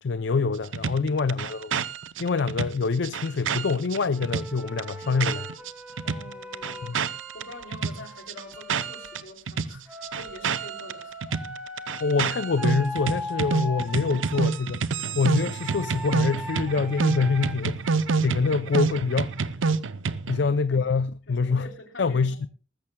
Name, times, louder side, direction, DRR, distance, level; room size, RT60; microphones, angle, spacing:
voice 1, 0.0-1.8 2.2-5.5 6.8-7.0 12.0-17.8 18.2-19.4 20.3-21.7 22.0-22.5, left 4 dB, 65° left, 0.5 m, -25 dB
sound 1, 0.7-5.7 6.0-9.2 9.5-20.4, right 5 dB, 85° right, 0.6 m, -28 dB
Wind instrument woodwind instrument, 4.1-9.2 9.9-14.5 15.3-17.5, left 1 dB, 5° right, 2.5 m, -39 dB
voice 2, 6.0-11.1 20.3-20.8 21.3-22.5, left 1 dB, 85° left, 3.0 m, -46 dB
19.5 x 14.5 x 2.2 m
head